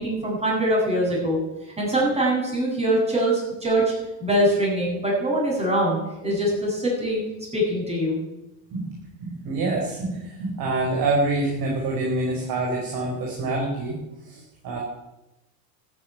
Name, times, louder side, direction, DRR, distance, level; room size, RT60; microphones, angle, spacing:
voice 1, 0.0-1.4 1.8-3.8 4.2-7.2 7.5-8.2, right 1 dB, 15° right, -3 dB, 8.0 m, -23 dB
voice 2, 9.2-14.8, right 2 dB, 45° right, -1 dB, 4.8 m, -26 dB
13.5 x 9.9 x 9.1 m, 0.98 s
supercardioid pair, 120°, 48 cm